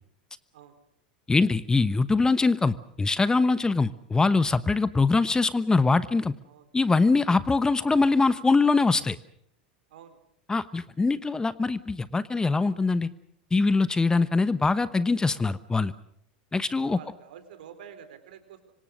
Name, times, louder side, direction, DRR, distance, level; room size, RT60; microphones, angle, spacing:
voice 1, 1.3-6.3 6.7-9.2 10.5-13.1 13.5-15.9 16.5-17.0, left 3 dB, 15° left, 15 dB, 1.1 m, -23 dB
voice 2, 16.8-18.7, right 8 dB, 70° right, 9 dB, 4.0 m, -48 dB
26.0 x 25.0 x 6.5 m, 0.69 s
hypercardioid pair, 90°, 5 cm